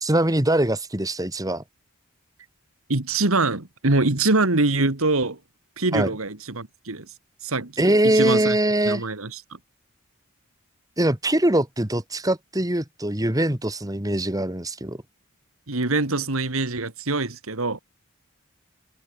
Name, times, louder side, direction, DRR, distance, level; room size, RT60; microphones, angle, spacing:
voice 1, 0.0-1.6 5.9-6.1 7.8-9.0 11.0-15.0, right 1 dB, 15° right, 1.9 m, -22 dB
voice 2, 2.9-5.4 5.8-7.1 7.4-8.6 8.8-9.4 15.7-17.8, right 2 dB, 75° right, 2.2 m, -24 dB
head